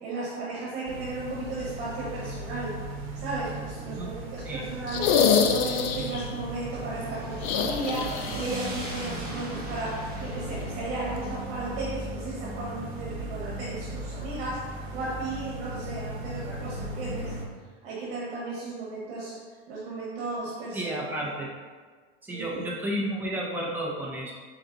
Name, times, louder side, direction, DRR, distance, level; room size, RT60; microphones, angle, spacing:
voice 1, 0.0-2.8 3.1-5.1 5.5-17.3 17.8-21.0 22.3-22.7, right 2 dB, 65° right, -5 dB, 1.2 m, -35 dB
sound 1, 0.9-17.4, right 1 dB, 90° right, 0.9 m, -37 dB
voice 2, 3.9-4.2 4.4-4.7 20.7-21.5 22.2-24.3, right 1 dB, 5° right, -5 dB, 0.8 m, -32 dB
sound 2, 4.9-6.3 7.4-8.6 8.8-8.9 10.6-10.7, left 6 dB, 50° left, 0.5 m, -25 dB
sound 3, 6.7-14.9, right 1 dB, 30° right, 1.5 m, -41 dB
4.2 x 4.1 x 2.6 m, 1.5 s
supercardioid pair, 130°, 30 cm